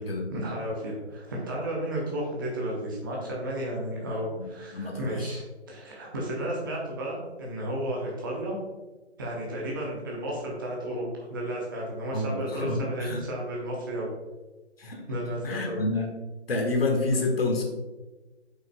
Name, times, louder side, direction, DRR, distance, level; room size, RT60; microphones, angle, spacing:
voice 1, 0.0-8.6 9.2-14.1 15.1-15.8 17.1-17.3, right 1 dB, 20° right, -3 dB, 0.8 m, -33 dB
voice 2, 4.4-5.1 12.1-13.2 14.8-15.0 15.4-16.1 16.5-17.6, left 2 dB, 55° left, 2 dB, 1.5 m, -28 dB
7.4 x 5.7 x 2.2 m, 1.2 s
figure-of-eight pair, 160°, 34 cm